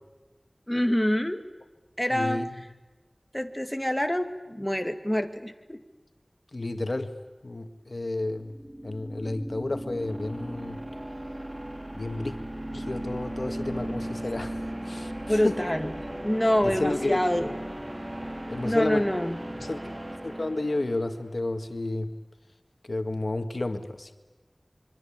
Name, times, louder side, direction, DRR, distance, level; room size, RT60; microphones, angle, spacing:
voice 1, 0.7-1.4 2.0-2.4 3.3-5.8 15.2-15.9 16.2-17.5 18.6-19.4, equal, 15° left, 6 dB, 2.4 m, -26 dB
voice 2, 2.1-2.5 6.5-7.2 7.4-8.5 8.8-10.8 11.9-12.3 12.7-15.6 16.6-17.2 18.5-19.1 19.6-19.8 20.2-22.1 22.9-24.1, left 2 dB, 75° left, 7 dB, 1.9 m, -31 dB
sound 1, 8.4-21.3, right 1 dB, 30° right, 2.3 m, -37 dB
26.5 x 24.5 x 8.7 m, 1.2 s
wide cardioid pair, 45°, 0 cm